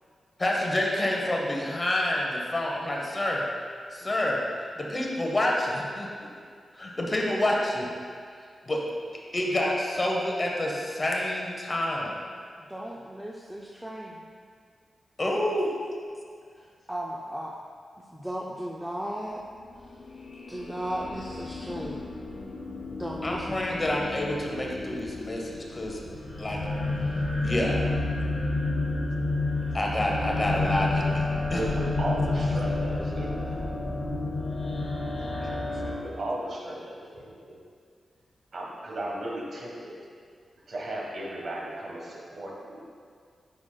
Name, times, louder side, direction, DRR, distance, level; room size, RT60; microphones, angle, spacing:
voice 1, 0.4-3.4 3.9-6.3 6.7-7.8 8.7-8.8 9.3-12.2 15.2-15.7 23.2-26.0 26.4-26.6 27.4-27.9 29.7-31.6, left 1 dB, 25° left, -1 dB, 0.8 m, -28 dB
voice 2, 12.6-14.3 16.5-17.6 18.1-19.4 19.9-20.0 20.5-22.1 22.9-23.4, right 1 dB, 5° right, -2 dB, 0.4 m, -36 dB
sound 1, 19.7-36.0, left 2 dB, 45° left, 1.2 m, -30 dB
voice 3, 31.5-33.6 35.8-37.6 38.5-40.0 40.7-42.9, right 1 dB, 55° right, -3 dB, 1.3 m, -36 dB
9.6 x 5.5 x 2.2 m, 2.1 s
wide cardioid pair, 130°, 0 cm